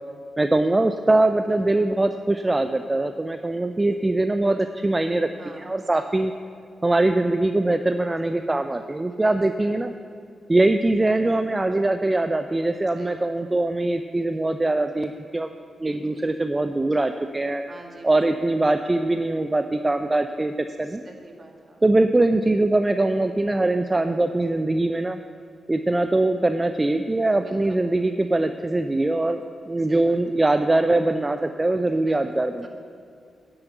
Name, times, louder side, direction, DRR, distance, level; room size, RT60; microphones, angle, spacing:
voice 1, 0.4-5.3 5.6-6.3 6.8-9.9 10.5-15.5 15.8-17.6 18.0-21.0 21.8-25.2 25.7-32.7, right 2 dB, 25° right, 8 dB, 0.5 m, -22 dB
voice 2, 5.2-5.7 5.9-6.2 9.1-9.5 13.0-13.3 15.9-16.2 17.7-18.2 21.1-21.9 27.4-27.8 29.8-30.2 32.0-32.2 32.6-32.7, right 2 dB, 50° right, 2 dB, 2.1 m, -45 dB
10.0 x 7.8 x 8.0 m, 2.4 s
supercardioid pair, 45°, 0 cm